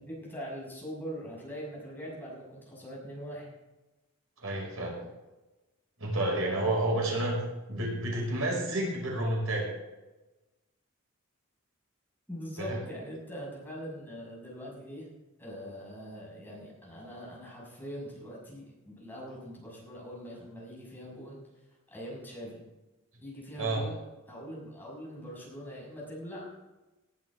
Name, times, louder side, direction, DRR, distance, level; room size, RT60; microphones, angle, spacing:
voice 1, 0.0-3.5 12.3-15.1 15.4-21.4 21.9-22.6 23.2-24.0 24.3-26.5, equal, 10° left, -4 dB, 6.1 m, -42 dB
voice 2, 4.4-5.0 6.0-7.4 7.7-9.7 12.6-12.8 23.6-23.8, right 1 dB, 80° right, -1 dB, 5.9 m, -30 dB
19.0 x 11.5 x 3.7 m, 1.1 s
head